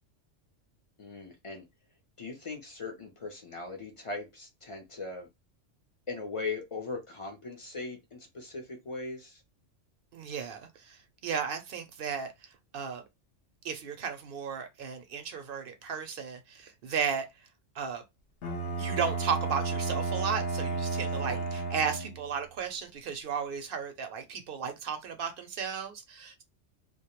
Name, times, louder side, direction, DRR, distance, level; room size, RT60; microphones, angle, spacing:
voice 1, 1.0-1.6 2.2-5.3 6.1-9.4 21.1-21.5, left 3 dB, 45° left, 0.4 m, -39 dB
voice 2, 10.1-13.0 13.6-17.3 17.8-18.0 18.8-26.4, right 6 dB, 60° right, 0.6 m, -34 dB
Bowed string instrument, 18.4-22.4, right 3 dB, 60° left, 0.8 m, -32 dB
2.2 x 2.1 x 2.9 m
omnidirectional pair, 1.2 m